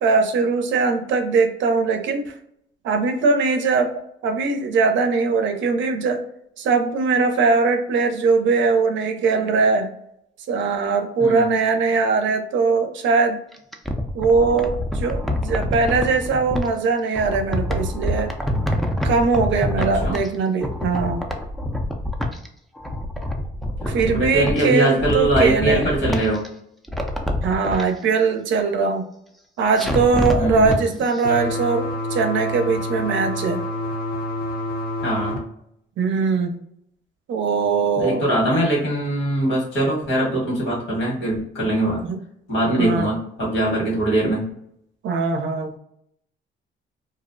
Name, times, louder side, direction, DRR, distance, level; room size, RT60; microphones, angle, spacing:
voice 1, 0.0-2.3 2.8-3.9 4.2-6.2 6.6-9.9 10.5-13.4 14.1-18.3 19.0-21.2 23.9-25.9 27.4-29.0 29.6-33.6 36.0-36.5 37.3-38.2 42.0-42.2 42.8-43.1 45.0-45.7, right 4 dB, 75° right, 6 dB, 0.5 m, -21 dB
voice 2, 11.2-11.5 20.0-20.2 23.8-26.4 30.4-31.0 35.0-35.4 38.0-42.0 42.5-44.5, right 1 dB, 75° left, -3 dB, 1.4 m, -22 dB
sound 1, 13.5-16.7 17.1-20.4 20.6-22.5 22.8-24.6 25.0-26.5 26.8-27.8 29.8-30.8 31.1-31.2, left 1 dB, ahead, 0.3 m, -26 dB
sound 2, 31.2-35.4, left 1 dB, 50° left, 0.6 m, -27 dB
2.5 x 2.0 x 2.5 m, 0.73 s
cardioid pair, 90°, 20 cm